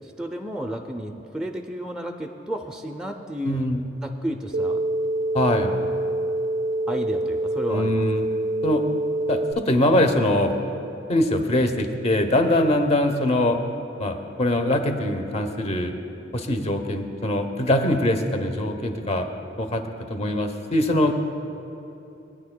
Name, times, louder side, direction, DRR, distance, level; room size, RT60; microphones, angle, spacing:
voice 1, 0.0-3.7 4.0-4.8 5.6-5.8 6.9-8.0, equal, 5° right, 1 dB, 0.4 m, -32 dB
voice 2, 3.4-3.8 5.3-5.7 7.7-8.2 8.6-8.8 9.3-10.5 11.1-13.6 14.0-16.1 16.3-19.3 19.6-19.8 20.1-21.2, left 1 dB, 35° left, 5 dB, 0.8 m, -22 dB
sound 1, 4.5-9.5, right 1 dB, 70° right, 0.4 m, -26 dB
21.5 x 9.8 x 2.2 m, 3.0 s
head